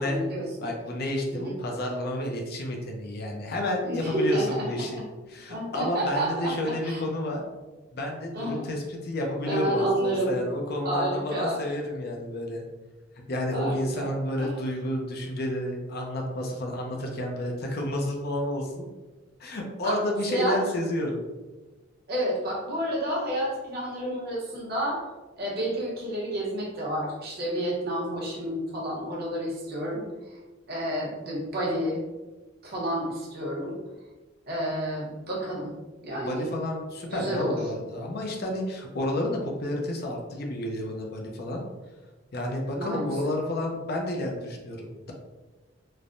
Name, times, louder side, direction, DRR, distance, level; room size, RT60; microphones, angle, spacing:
voice 1, 0.0-0.7 1.3-1.5 3.8-4.7 4.9-5.0 5.5-6.5 6.8-7.0 8.3-8.6 9.5-10.4 10.8-11.6 13.5-14.1 14.4-14.5 19.8-20.0 20.3-20.6 22.1-25.0 25.4-30.0 30.7-32.0 32.6-33.8 34.5-35.7 36.0-36.5 37.1-37.6 42.7-43.1, right 1 dB, 50° right, -5 dB, 0.9 m, -30 dB
voice 2, 0.6-5.0 5.3-7.4 7.9-12.6 13.3-18.9 19.4-21.2 36.2-41.6 42.3-45.1, left 1 dB, 50° left, 1 dB, 0.5 m, -30 dB
3.2 x 2.1 x 2.5 m, 1.2 s
head